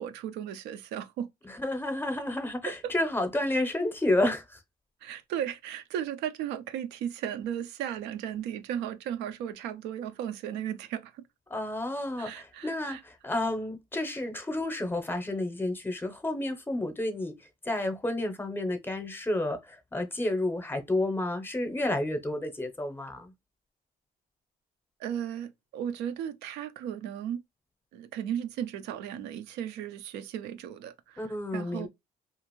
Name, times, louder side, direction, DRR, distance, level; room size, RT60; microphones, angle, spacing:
voice 1, 0.0-1.3 2.8-2.9 5.0-11.2 12.2-13.0 25.0-27.4 27.9-31.2 31.5-31.9, right 10 dB, 90° right, 0.4 m, -35 dB
voice 2, 1.4-4.6 11.5-23.3 31.2-31.9, left 1 dB, 10° left, 0.6 m, -31 dB
2.5 x 2.4 x 3.0 m
cardioid pair, 110°, 17 cm